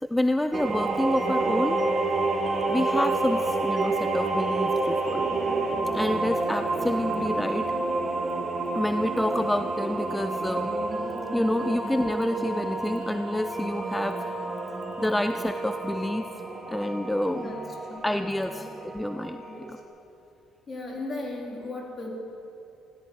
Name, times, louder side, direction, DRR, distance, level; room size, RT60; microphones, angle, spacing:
voice 1, 0.0-1.8 2.7-5.4 5.9-7.7 8.7-10.7 11.3-14.2 15.0-16.3 16.7-17.5 18.0-18.7 18.9-19.4 19.7-19.8, left 1 dB, 10° left, 9 dB, 0.5 m, -28 dB
sound 1, 0.5-19.8, right 3 dB, 40° right, 1.7 m, -29 dB
voice 2, 20.7-22.2, left 2 dB, 40° left, -1 dB, 3.7 m, -36 dB
16.5 x 14.5 x 4.7 m, 2.8 s
supercardioid pair, 80°, 0 cm